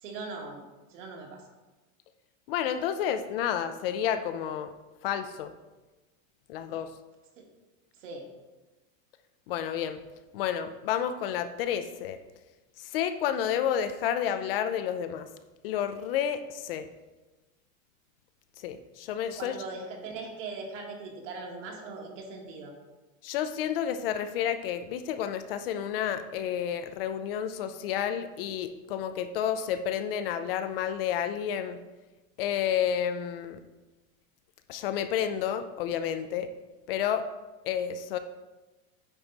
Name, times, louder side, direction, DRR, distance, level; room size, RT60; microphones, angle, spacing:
voice 1, 0.0-1.4 7.4-7.5 8.0-8.3 19.3-22.7, right 3 dB, 65° right, 1 dB, 1.9 m, -40 dB
voice 2, 2.5-4.7 5.0-5.5 6.5-6.9 9.5-10.0 10.3-12.2 12.8-15.3 15.6-16.9 18.6-19.6 23.2-31.8 32.4-33.6 34.7-36.5 36.9-37.3 37.6-38.2, left 9 dB, 45° left, 10 dB, 0.4 m, -30 dB
9.0 x 4.6 x 3.9 m, 1.2 s
supercardioid pair, 165°, 40 cm